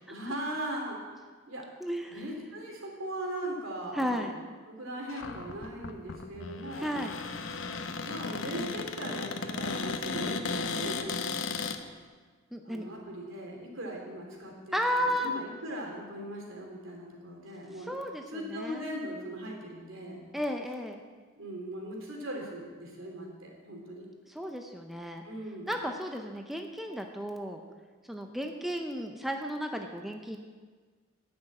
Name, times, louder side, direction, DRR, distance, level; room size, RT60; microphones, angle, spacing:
voice 1, 0.1-1.0 1.5-1.7 2.1-4.3 4.7-6.9 8.0-11.7 12.6-17.9 18.3-20.2 21.4-24.1 25.2-25.7, right 1 dB, 70° right, -1 dB, 2.9 m, -39 dB
voice 2, 1.8-2.2 3.9-4.4 6.8-7.2 12.5-12.8 14.7-15.3 17.9-18.9 20.3-21.0 24.3-25.2 25.7-27.6 28.1-30.4, equal, ahead, 3 dB, 0.6 m, -33 dB
Cupboard open or close, 5.1-11.8, left 4 dB, 65° left, 0.8 m, -35 dB
10.5 x 6.1 x 8.8 m, 1.5 s
head